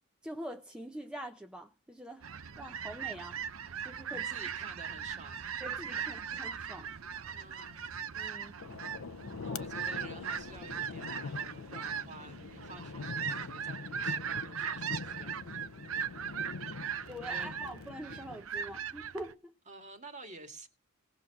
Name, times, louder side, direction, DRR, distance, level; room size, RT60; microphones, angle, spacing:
voice 1, 0.2-2.3 2.6-3.4 3.8-4.3 5.6-6.9 8.1-8.5 17.1-19.5, right 1 dB, 5° right, 0.7 m, -44 dB
sound 1, 2.2-19.3, right 7 dB, 75° right, 0.7 m, -39 dB
voice 2, 4.1-5.4 6.0-6.2 7.3-7.9 9.4-15.4 16.7-17.5 19.7-20.7, right 3 dB, 35° right, 2.0 m, -51 dB
sound 2, 8.6-18.4, left 4 dB, 90° left, 0.6 m, -43 dB
18.5 x 6.4 x 5.9 m
head